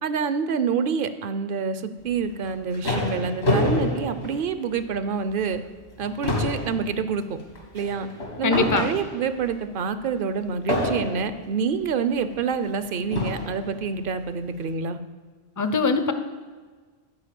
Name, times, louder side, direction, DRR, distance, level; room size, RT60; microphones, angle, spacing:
voice 1, 0.0-5.6 6.0-7.4 7.7-8.1 8.4-15.0, right 6 dB, 60° right, 11 dB, 0.7 m, -27 dB
sound 1, 2.3-5.0 5.4-5.6 5.9-9.4 10.7-11.4 12.3-12.4 13.1-13.6, left 2 dB, 80° left, 2.2 m, -27 dB
voice 2, 8.4-8.9 15.6-16.1, left 4 dB, 25° left, 9 dB, 0.5 m, -22 dB
11.5 x 4.6 x 7.6 m, 1.5 s
omnidirectional pair, 1.1 m